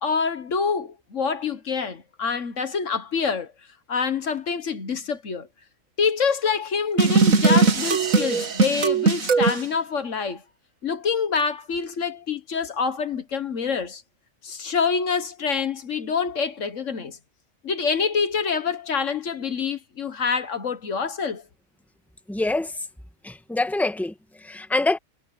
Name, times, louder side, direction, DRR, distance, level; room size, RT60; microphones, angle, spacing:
voice 1, 0.0-3.5 3.9-5.5 6.0-10.4 10.8-14.0 14.4-17.2 17.6-21.4, left 5 dB, 65° left, 1.6 m, -26 dB
sound 1, 7.0-9.6, right 4 dB, 90° right, 2.1 m, -19 dB
voice 2, 22.3-22.8 23.2-25.0, left 2 dB, ahead, 1.5 m, -25 dB
omnidirectional pair, 1.4 m